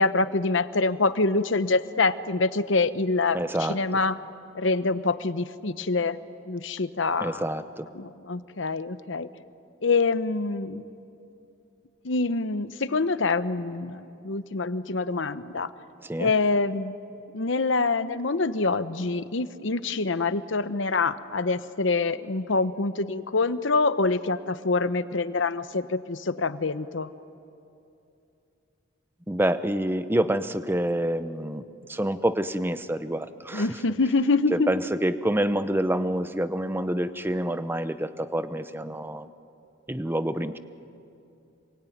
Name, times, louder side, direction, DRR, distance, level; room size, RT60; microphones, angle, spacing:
voice 1, 0.0-4.2 4.5-6.2 6.5-7.4 7.9-9.3 9.8-10.9 12.0-15.7 16.2-16.9 17.3-27.1 33.5-34.7, left 3 dB, 65° left, 13 dB, 0.9 m, -25 dB
voice 2, 3.3-3.8 7.2-7.9 16.0-16.3 29.3-33.7 34.5-39.3 39.9-40.6, right 1 dB, 10° right, 12 dB, 0.7 m, -27 dB
26.5 x 23.0 x 9.4 m, 2.7 s
head